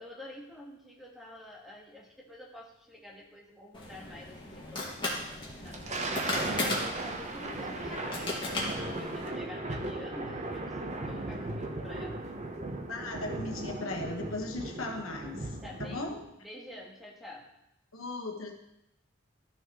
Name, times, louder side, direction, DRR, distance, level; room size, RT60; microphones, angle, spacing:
voice 1, 0.0-6.3 6.7-12.2 15.6-17.5, left 1 dB, ahead, -3 dB, 1.5 m, -48 dB
sound 1, 3.7-9.3, left 2 dB, 25° left, 1.9 m, -36 dB
Thunder, 5.5-16.3, right 2 dB, 35° right, 0.8 m, -37 dB
voice 2, 7.4-8.2 8.5-8.9 11.8-12.0 12.9-16.2 17.9-18.5, left 2 dB, 85° left, 2 dB, 1.3 m, -39 dB
13.0 x 6.3 x 3.0 m, 0.83 s
head